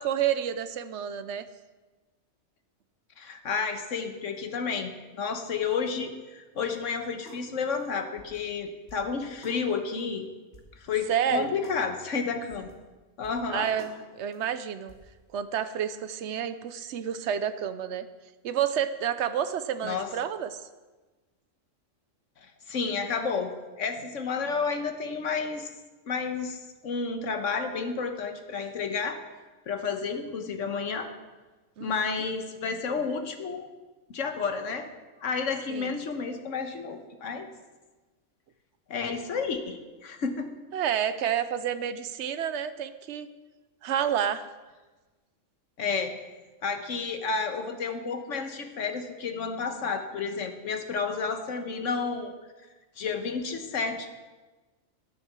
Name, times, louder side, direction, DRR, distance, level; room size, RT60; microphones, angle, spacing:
voice 1, 0.0-1.5 11.1-11.6 13.5-14.9 15.3-18.1 18.4-20.7 31.8-32.0 35.7-35.9 40.7-43.3 43.8-44.5, right 9 dB, 65° right, 12 dB, 0.9 m, -29 dB
voice 2, 3.2-10.3 10.8-12.7 13.2-13.7 19.8-20.1 22.7-23.5 23.8-25.7 26.1-29.2 29.7-31.1 31.8-33.7 34.1-34.9 35.2-37.5 38.9-40.5 45.8-46.2 46.6-52.3 53.0-54.1, left 5 dB, 70° left, 6 dB, 1.4 m, -31 dB
sound 1, 6.7-6.8 7.3-7.4 7.8-7.9 8.2-8.4 8.9-9.1 9.4-9.6 10.0-10.1 10.5-10.7 11.1-11.2 11.6-11.8 12.2-12.3 12.5-12.8 13.2-13.4 13.8-14.0 14.3-14.4 14.9-15.2, left 1 dB, 55° left, 2.4 m, -50 dB
11.0 x 8.2 x 6.1 m, 1.2 s
omnidirectional pair, 1.4 m